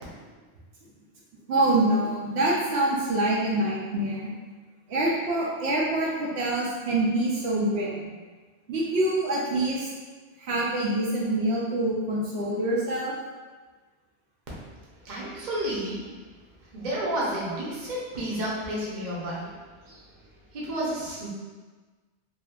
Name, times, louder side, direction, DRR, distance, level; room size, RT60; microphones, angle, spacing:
voice 1, 1.5-4.3 4.9-8.0 8.7-9.9 10.4-13.2, right 1 dB, 80° right, -5 dB, 0.9 m, -25 dB
voice 2, 15.0-16.0 16.7-19.5 19.9-20.0 20.5-21.3, right 1 dB, 50° right, -6 dB, 0.8 m, -31 dB
2.9 x 2.4 x 2.3 m, 1.3 s
omnidirectional pair, 1.1 m